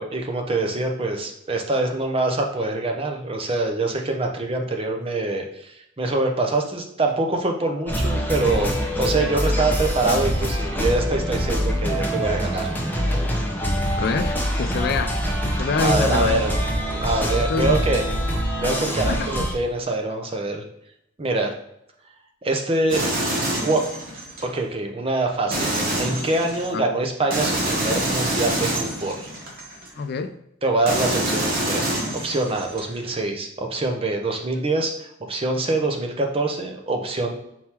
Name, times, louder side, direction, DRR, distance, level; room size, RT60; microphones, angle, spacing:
voice 1, 0.0-8.7 9.0-12.7 15.8-16.5 17.0-18.0 18.6-20.6 21.2-21.5 22.4-23.0 23.6-23.8 24.5-25.7 26.0-29.3 30.6-34.9 35.3-37.3, right 2 dB, 30° right, 2 dB, 0.7 m, -24 dB
sound 1, 7.9-19.5, equal, 10° left, 0.7 m, -24 dB
voice 2, 14.0-16.4 17.4-17.8 19.0-19.4 26.7-26.9 30.0-30.4, left 4 dB, 55° left, 9 dB, 0.4 m, -26 dB
sound 2, 22.9-24.4 25.5-26.7 27.3-29.9 30.9-32.9, right 1 dB, 50° right, 1.1 m, -26 dB
4.3 x 3.6 x 2.9 m, 0.79 s
head